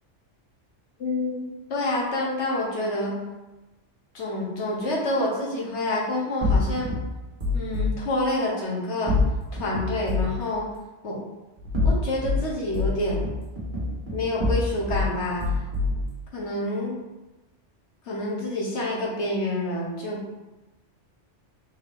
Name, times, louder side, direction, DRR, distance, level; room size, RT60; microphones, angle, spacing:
voice 1, 1.0-3.2 4.1-6.9 7.5-9.1 9.5-10.7 11.0-11.2 11.8-13.2 14.1-15.5 16.3-17.0 18.0-20.2, left 1 dB, 70° left, -3 dB, 1.3 m, -28 dB
sound 1, 6.4-7.9 9.1-10.4 11.6-12.4 12.7-15.1 15.4-16.1, left 3 dB, 45° right, 1.3 m, -25 dB
4.1 x 2.8 x 3.4 m, 1.1 s
omnidirectional pair, 1.2 m